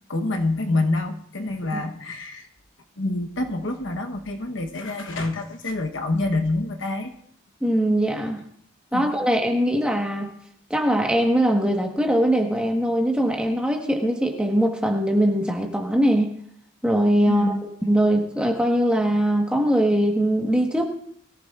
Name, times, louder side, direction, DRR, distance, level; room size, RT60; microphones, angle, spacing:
voice 1, 0.1-2.5 3.0-7.1 8.9-9.1 17.3-17.7, left 2 dB, 60° left, 4 dB, 1.0 m, -27 dB
voice 2, 7.6-8.4 8.9-10.3 10.7-16.3 16.8-17.5 17.8-20.9, equal, 5° right, 2 dB, 1.3 m, -21 dB
22.5 x 14.0 x 2.5 m, 0.65 s
head